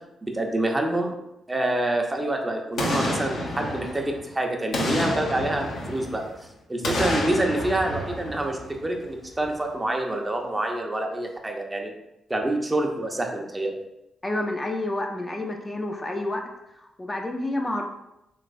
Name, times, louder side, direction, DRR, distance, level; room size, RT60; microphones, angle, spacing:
voice 1, 0.2-1.1 1.5-6.2 6.7-11.9 12.3-13.7, right 1 dB, 20° right, 2 dB, 0.6 m, -27 dB
Boom, 2.8-4.3 4.7-6.4 6.8-9.1 9.4-9.5, left 1 dB, 75° left, 0.7 m, -29 dB
voice 2, 14.2-16.5 17.0-17.8, left 1 dB, 25° left, 2 dB, 0.4 m, -29 dB
3.1 x 2.9 x 2.5 m, 0.87 s
supercardioid pair, 50°, 0 cm